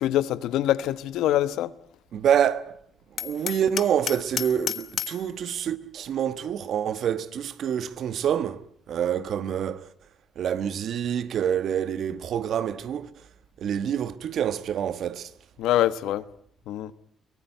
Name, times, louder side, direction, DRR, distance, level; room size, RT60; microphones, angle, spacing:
voice 1, 0.0-1.7 15.6-16.2 16.7-16.9, left 13 dB, 90° left, 1.1 m, -24 dB
voice 2, 2.1-2.8 3.1-9.9 10.3-13.1 13.6-15.3, right 9 dB, 70° right, 1.3 m, -27 dB
Hammer, 3.2-5.3, left 9 dB, 60° left, 1.3 m, -32 dB
24.0 x 17.5 x 9.1 m
cardioid pair, 90°, 0 cm